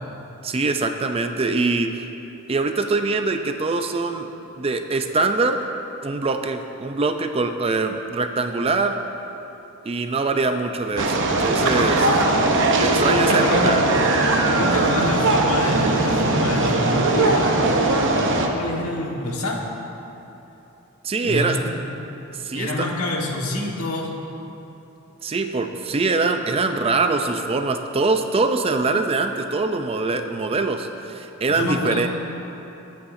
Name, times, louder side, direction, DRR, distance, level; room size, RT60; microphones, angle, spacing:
voice 1, 0.4-1.9 2.5-4.3 4.6-5.6 6.0-9.0 9.8-12.2 12.8-13.8 21.0-21.6 22.4-22.9 25.2-32.1, right 3 dB, 25° right, 6 dB, 0.4 m, -23 dB
sound 1, 11.0-18.5, right 2 dB, 55° right, 0.9 m, -19 dB
voice 2, 13.1-13.9 14.5-19.6 21.2-21.8 22.5-24.2 31.5-32.0, left 2 dB, 80° left, -1 dB, 1.5 m, -27 dB
21.0 x 8.4 x 2.6 m, 3.0 s
head